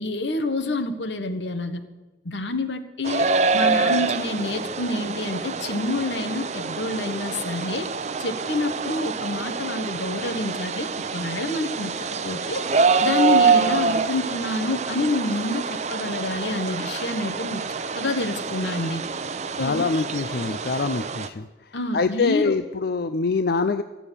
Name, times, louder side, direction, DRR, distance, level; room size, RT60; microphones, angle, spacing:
voice 1, 0.0-1.8 2.2-3.3 3.5-7.9 8.2-11.9 12.2-12.6 13.0-17.6 17.9-19.0 19.6-19.9 21.7-22.6, left 2 dB, 85° left, 8 dB, 1.4 m, -27 dB
sound 1, 3.0-21.3, right 4 dB, 40° right, 0.6 m, -26 dB
sound 2, 13.9-14.4 15.2-15.7 16.7-17.3 18.5-19.1 20.2-21.0, equal, 5° left, 1.0 m, -46 dB
voice 2, 19.6-21.5 21.9-23.8, left 4 dB, 60° left, 10 dB, 0.5 m, -24 dB
15.0 x 6.9 x 9.8 m, 1.2 s
head